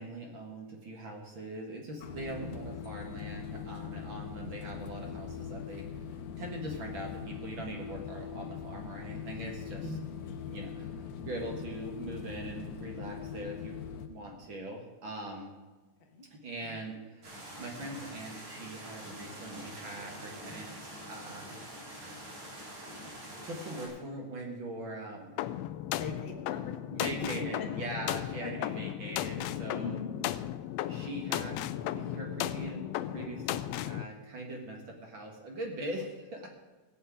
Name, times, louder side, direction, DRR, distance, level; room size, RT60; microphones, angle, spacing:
voice 1, 0.0-5.8 6.4-9.8 10.5-13.8 14.0-15.5 16.3-21.5 23.5-25.5 26.9-30.0 30.9-36.5, right 1 dB, 45° right, 1 dB, 2.1 m, -42 dB
sound 1, 2.0-14.1, left 7 dB, 70° left, 1.9 m, -41 dB
sound 2, 17.2-23.9, right 1 dB, 70° right, 5.2 m, -45 dB
sound 3, 25.4-34.0, left 13 dB, 85° left, 1.5 m, -35 dB
voice 2, 26.0-27.1 27.4-27.7 28.0-28.1 28.4-28.7 29.8-30.1 36.4-36.5, left 3 dB, 55° left, 2 dB, 0.6 m, -41 dB
16.5 x 5.5 x 8.4 m, 1.2 s
omnidirectional pair, 3.6 m